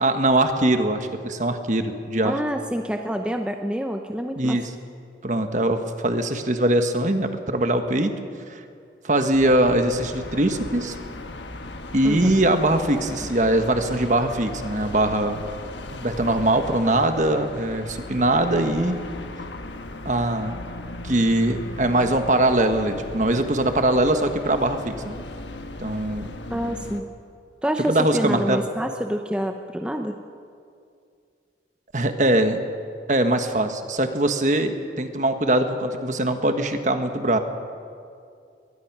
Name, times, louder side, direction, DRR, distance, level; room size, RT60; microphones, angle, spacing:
voice 1, 0.0-2.4 4.4-4.7 5.2-8.1 8.5-8.6 9.0-10.9 11.9-15.4 15.9-19.0 20.0-20.6 21.0-25.2 25.8-26.3 27.9-28.6 31.9-32.6 33.1-37.4, right 1 dB, 45° right, 7 dB, 1.4 m, -22 dB
voice 2, 2.2-4.6 12.0-12.4 26.5-27.0 27.6-30.2, equal, 5° right, 4 dB, 0.7 m, -27 dB
sound 1, 9.3-27.0, left 2 dB, 80° left, 1.4 m, -37 dB
22.5 x 19.5 x 6.0 m, 2.4 s
head